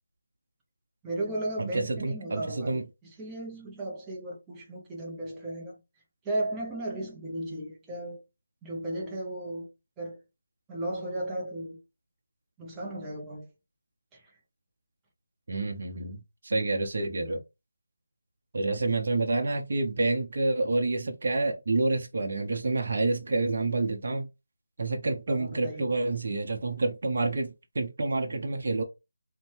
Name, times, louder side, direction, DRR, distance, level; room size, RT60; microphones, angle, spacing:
voice 1, 1.0-5.8 6.2-8.2 8.6-9.7 10.0-10.2 10.7-11.8 12.6-13.5 14.1-14.4 25.3-25.9, right 1 dB, 10° right, 0.6 m, -35 dB
voice 2, 1.6-2.8 15.5-17.4 18.5-24.3 24.8-28.8, right 2 dB, 50° right, 0.7 m, -28 dB
2.6 x 2.1 x 3.2 m
figure-of-eight pair, 165°, 0 cm